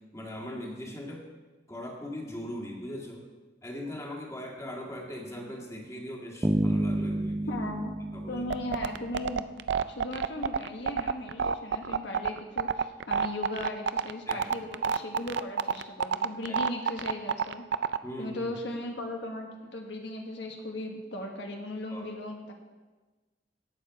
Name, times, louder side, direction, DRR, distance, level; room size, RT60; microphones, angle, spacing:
voice 1, 0.1-1.3 1.7-3.3 3.6-7.6 8.1-8.4 14.3-14.5 16.5-16.6 18.0-18.6 21.9-22.1, left 1 dB, 15° left, 0 dB, 1.9 m, -40 dB
sound 1, 6.4-9.5, right 1 dB, 15° right, 0.5 m, -30 dB
voice 2, 7.5-7.9 8.3-9.5 9.9-17.6 18.2-22.5, left 1 dB, 70° left, 2 dB, 1.3 m, -37 dB
sound 2, 8.5-18.0, right 6 dB, 70° right, 0.4 m, -27 dB
17.5 x 7.1 x 4.7 m, 1.2 s
head